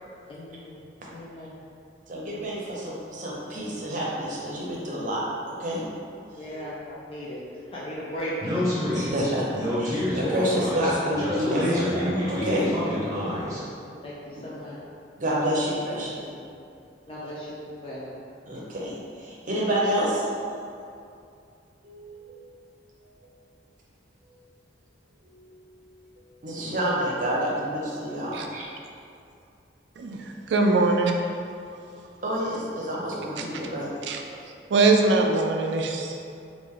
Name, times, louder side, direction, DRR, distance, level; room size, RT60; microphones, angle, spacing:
voice 1, 0.3-1.6 6.3-9.0 13.4-14.8 15.2-15.6 16.3-16.5 17.1-18.1 18.5-18.6, equal, 30° left, -8 dB, 0.4 m, -38 dB
voice 2, 2.1-5.8 6.4-6.6 8.9-12.9 15.2-16.2 18.5-20.3 21.8-22.6 25.2-26.0 26.4-28.7 32.2-34.1, equal, 45° right, -5 dB, 0.7 m, -29 dB
Speech, 8.4-13.6, left 1 dB, 20° right, 0.9 m, -27 dB
voice 3, 30.5-31.1 33.4-33.5 34.1-34.2 34.7-36.2, right 3 dB, 70° right, 2 dB, 0.3 m, -22 dB
3.2 x 2.5 x 3.6 m, 2.5 s
head